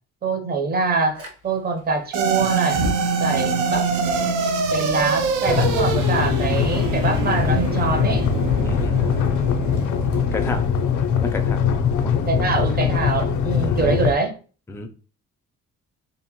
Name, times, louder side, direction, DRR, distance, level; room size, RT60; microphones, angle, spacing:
voice 1, 0.2-2.8 3.2-4.1 4.7-8.3 12.1-14.4, right 4 dB, 30° right, 0.6 m, -24 dB
Fire, 1.2-1.3 2.6-11.6, equal, 50° right, 1.0 m, -33 dB
sound 1, 2.1-10.6, right 4 dB, 85° right, 0.5 m, -25 dB
sound 2, 5.5-14.1, left 7 dB, 75° left, 0.4 m, -22 dB
voice 2, 8.6-9.0 10.3-10.7 11.1-11.6 11.9-12.1 13.6-13.9 14.7-14.9, left 3 dB, 10° left, 0.4 m, -30 dB
2.9 x 2.1 x 2.8 m
cardioid pair, 90°, 30 cm